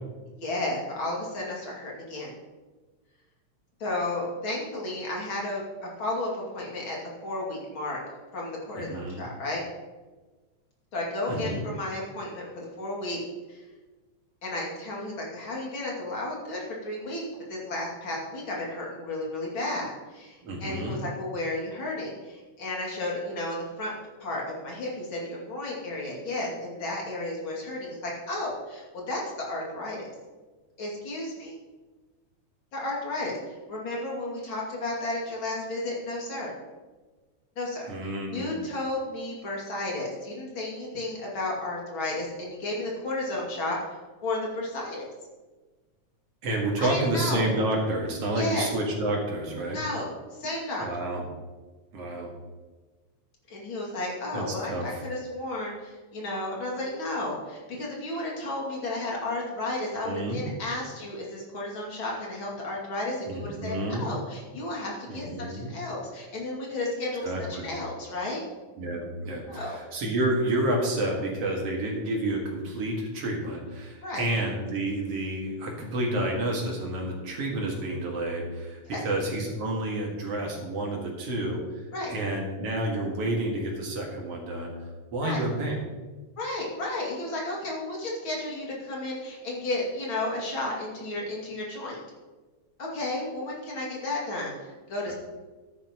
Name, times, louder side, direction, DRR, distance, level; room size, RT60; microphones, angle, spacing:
voice 1, 0.4-2.3 3.8-7.0 7.2-8.0 8.3-9.6 10.9-13.2 13.5-13.6 14.4-17.2 17.5-23.9 24.2-29.2 29.5-30.1 30.8-31.6 32.7-33.4 33.7-36.5 37.6-37.9 38.3-45.0 46.8-47.5 48.3-48.7 49.7-50.8 53.5-68.4 69.5-69.8 74.0-74.2 78.9-79.0 81.9-82.1 85.2-85.5 86.4-92.0 92.8-95.1, left 2 dB, 45° left, -3 dB, 3.1 m, -33 dB
voice 2, 8.8-9.3 11.3-11.6 20.4-21.0 37.9-38.6 46.4-49.8 50.8-51.2 51.9-52.3 54.3-55.0 60.0-60.4 63.3-64.1 65.1-65.7 67.2-67.7 68.8-81.6 82.1-84.7 85.1-85.8 95.1-95.2, right 1 dB, 55° right, 0 dB, 2.7 m, -29 dB
13.5 x 10.5 x 3.0 m, 1.3 s
omnidirectional pair, 3.4 m